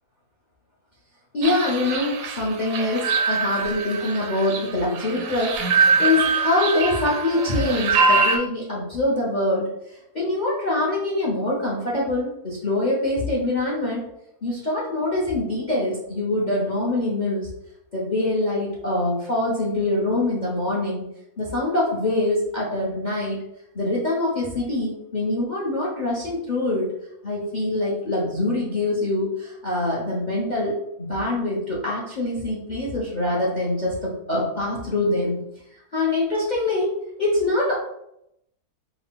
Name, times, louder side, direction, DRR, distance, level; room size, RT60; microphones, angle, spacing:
voice 1, 1.3-14.1 14.4-17.5 17.9-21.0 21.4-23.4 23.7-26.9 27.2-35.4 35.7-37.7, left 2 dB, 35° left, -5 dB, 0.8 m, -24 dB
sound 1, 1.4-8.4, right 4 dB, 70° right, 0.8 m, -23 dB
4.7 x 2.3 x 3.7 m, 0.79 s
omnidirectional pair, 1.7 m